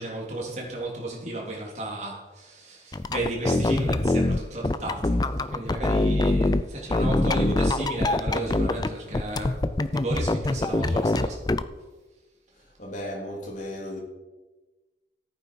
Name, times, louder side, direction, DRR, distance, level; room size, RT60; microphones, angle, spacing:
voice 1, 0.0-9.6 9.9-11.4, right 1 dB, 40° right, -2 dB, 3.1 m, -33 dB
sound 1, 2.9-6.6 6.9-8.9 9.1-11.6, left 2 dB, 20° left, 0.4 m, -24 dB
voice 2, 12.8-14.0, left 1 dB, 45° left, -1 dB, 3.0 m, -35 dB
14.5 x 9.0 x 4.6 m, 1.2 s
head